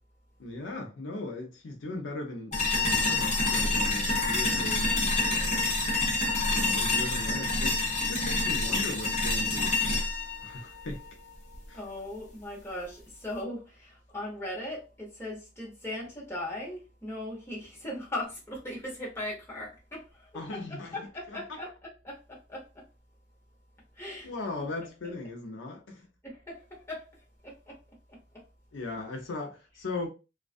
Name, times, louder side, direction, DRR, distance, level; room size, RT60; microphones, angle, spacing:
voice 1, 0.4-5.8 6.5-10.1 10.4-11.0 11.7-11.8 20.3-21.0 21.3-21.6 24.2-26.1 28.7-30.1, left 2 dB, 75° left, 0.5 m, -38 dB
sound 1, 2.5-11.6, left 3 dB, 40° left, 0.7 m, -27 dB
voice 2, 11.7-22.9 23.9-24.3 24.6-24.7 26.2-27.8 28.1-28.4, left 1 dB, 15° left, 0.9 m, -39 dB
2.4 x 2.2 x 2.4 m
head